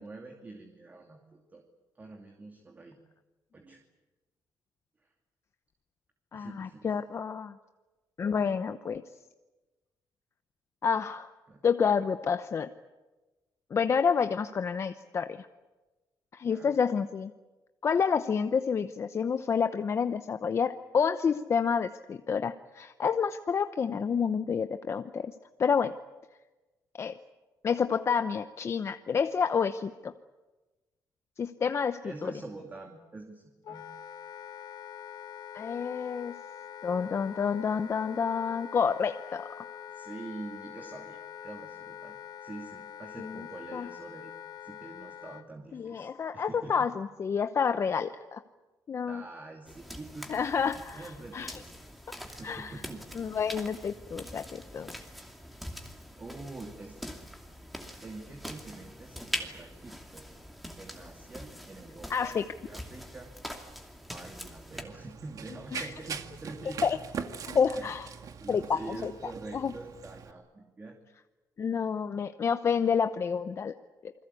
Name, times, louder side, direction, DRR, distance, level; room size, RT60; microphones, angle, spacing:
voice 1, 0.0-1.6 1.9-3.0 3.5-3.8 6.3-7.0 11.5-11.6 16.5-16.8 32.0-33.9 39.9-46.9 49.1-50.7 50.9-51.7 52.2-53.1 56.2-57.2 58.0-60.3 60.8-63.3 64.0-67.2 67.7-67.9 68.4-71.0, right 2 dB, 25° right, 3 dB, 2.6 m, -46 dB
voice 2, 6.3-7.6 8.2-9.0 10.8-11.3 11.6-12.7 13.7-15.5 16.3-17.3 17.8-25.9 27.0-27.1 27.6-30.1 31.4-32.3 35.5-36.4 36.8-39.6 43.2-43.4 43.7-43.9 45.7-48.4 48.9-49.2 50.3-51.6 52.4-52.7 53.1-54.9 62.1-62.5 65.7-65.9 66.8-67.0 67.5-68.1 68.5-69.1 69.5-69.7 71.6-73.7 74.0-74.1, left 6 dB, 40° left, 9 dB, 0.8 m, -29 dB
Wind instrument woodwind instrument, 33.6-45.5, left 9 dB, 65° left, 1.2 m, -45 dB
sound 1, 49.7-64.8, equal, ahead, 2.6 m, -43 dB
Run, 64.7-70.3, right 6 dB, 55° right, 1.9 m, -42 dB
28.5 x 21.5 x 8.5 m, 1.2 s
cardioid pair, 130°, 7 cm